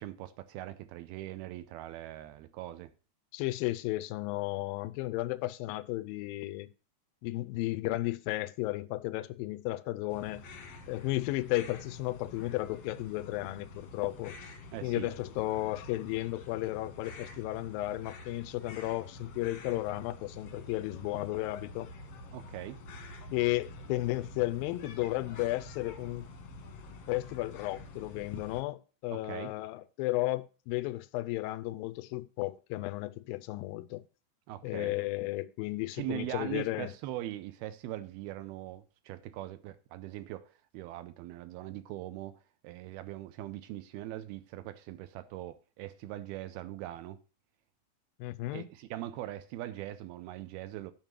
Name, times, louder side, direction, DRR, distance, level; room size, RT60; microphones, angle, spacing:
voice 1, 0.0-2.9 14.7-15.1 22.3-22.8 29.1-29.5 34.5-35.0 35.9-47.2 48.5-50.9, right 14 dB, 80° right, 2.3 m, -41 dB
voice 2, 3.3-6.7 7.2-10.5 10.9-14.4 14.8-21.9 23.3-26.3 27.1-34.0 34.6-36.9 48.2-48.7, left 18 dB, 85° left, 2.0 m, -34 dB
sound 1, 10.1-28.6, left 2 dB, 65° left, 1.5 m, -48 dB
9.1 x 5.6 x 7.3 m
omnidirectional pair, 4.9 m